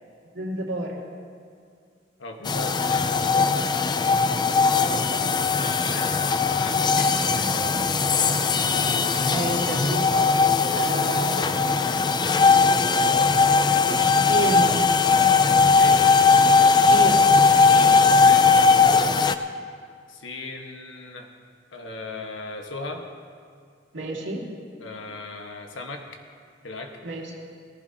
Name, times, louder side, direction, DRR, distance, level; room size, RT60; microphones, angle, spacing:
voice 1, 0.3-1.0 4.6-4.9 7.0-7.1 7.3-7.7 8.2-8.4 9.3-10.3 10.7-11.8 14.3-14.9 16.9-17.3 23.9-24.5 27.0-27.3, right 1 dB, 75° right, -2 dB, 2.2 m, -31 dB
voice 2, 2.2-3.5 5.8-6.8 8.1-8.3 15.8-16.0 17.6-19.2 20.1-21.3 21.7-23.0 24.8-26.0 26.6-26.9, left 2 dB, 90° left, 3 dB, 1.4 m, -37 dB
sound 1, 2.5-19.4, left 4 dB, 25° left, 0.3 m, -19 dB
18.5 x 15.0 x 2.8 m, 2.2 s
head